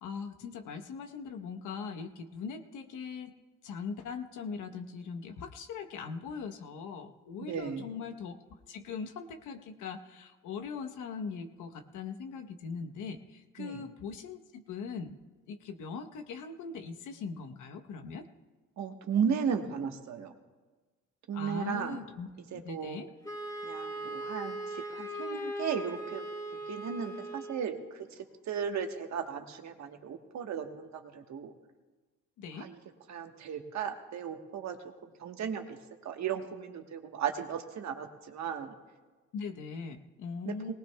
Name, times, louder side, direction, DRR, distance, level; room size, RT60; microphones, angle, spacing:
voice 1, 0.0-3.3 3.6-8.3 8.7-15.2 15.5-18.2 21.3-22.3 22.6-23.1 32.4-32.7 39.3-40.7, left 5 dB, 80° left, 5 dB, 1.0 m, -40 dB
voice 2, 7.4-7.8 13.6-13.8 18.8-20.3 21.3-22.0 22.5-23.0 23.6-26.2 26.6-31.5 32.5-32.8 33.1-35.8 36.0-38.7 40.4-40.7, right 7 dB, 65° right, 5 dB, 1.3 m, -35 dB
Wind instrument woodwind instrument, 23.2-27.7, right 1 dB, 10° left, 2.6 m, -39 dB
19.0 x 19.0 x 2.3 m, 1.3 s
cardioid pair, 90°, 30 cm